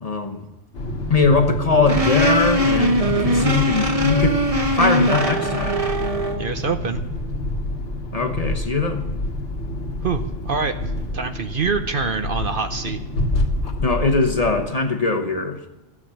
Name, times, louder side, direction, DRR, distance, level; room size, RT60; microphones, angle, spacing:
voice 1, 0.0-0.4 1.1-4.4 4.7-5.9 8.1-9.0 13.8-15.7, left 4 dB, 35° left, 5 dB, 0.9 m, -21 dB
sound 1, 0.7-14.7, left 1 dB, 70° left, 1.7 m, -28 dB
sound 2, 1.9-6.4, equal, 30° right, 1.3 m, -21 dB
voice 2, 6.4-7.0 10.0-10.7 11.1-13.0, right 5 dB, 50° right, 7 dB, 0.8 m, -25 dB
13.5 x 8.6 x 7.5 m, 1.0 s
omnidirectional pair, 1.2 m